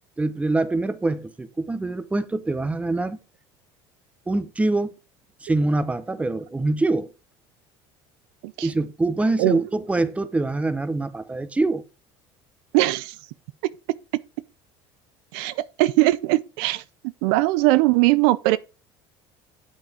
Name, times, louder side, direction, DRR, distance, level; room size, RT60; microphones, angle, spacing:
voice 1, 0.2-3.2 4.3-4.9 5.4-7.1 8.6-11.8, right 2 dB, 10° right, 0.8 m, -24 dB
voice 2, 12.7-13.2 15.3-16.8 17.2-18.6, right 18 dB, 80° right, 0.4 m, -20 dB
7.6 x 5.3 x 4.9 m
supercardioid pair, 110°, 12 cm